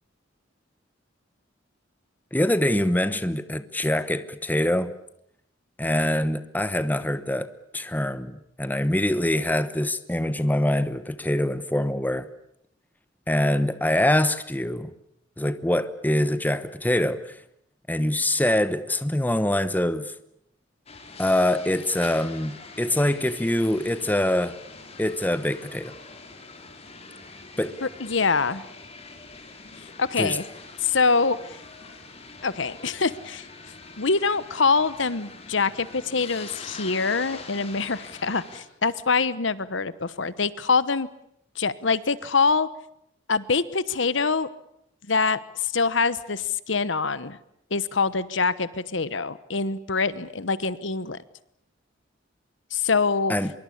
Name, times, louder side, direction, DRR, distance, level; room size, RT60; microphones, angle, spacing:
voice 1, 2.3-4.9 5.8-12.3 13.3-14.9 15.4-17.4 17.9-20.1 21.2-24.6 25.0-25.9 27.6-27.8 30.2-30.4 53.3-53.5, left 1 dB, 10° left, 1.0 m, -24 dB
sound 1, 20.9-38.6, left 3 dB, 35° left, 4.0 m, -44 dB
voice 2, 27.8-28.6 29.8-30.4 30.8-31.6 32.4-33.5 34.0-41.1 41.6-42.7 43.3-44.5 45.1-47.4 47.7-51.2 52.7-53.3, left 4 dB, 70° left, 1.1 m, -24 dB
24.5 x 23.0 x 8.6 m
head